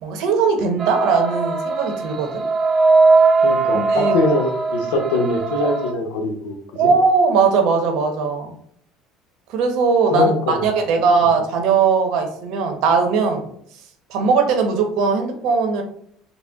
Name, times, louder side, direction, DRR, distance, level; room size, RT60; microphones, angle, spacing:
voice 1, 0.0-2.4 3.7-4.2 6.8-8.5 9.5-13.5 14.1-15.8, right 5 dB, 70° right, 4 dB, 0.9 m, -19 dB
sound 1, 0.8-5.9, right 3 dB, 35° right, 0.6 m, -19 dB
voice 2, 3.4-6.9 10.1-10.7, left 2 dB, 85° left, 3 dB, 0.8 m, -22 dB
4.1 x 2.1 x 3.4 m, 0.65 s
supercardioid pair, 105°, 0 cm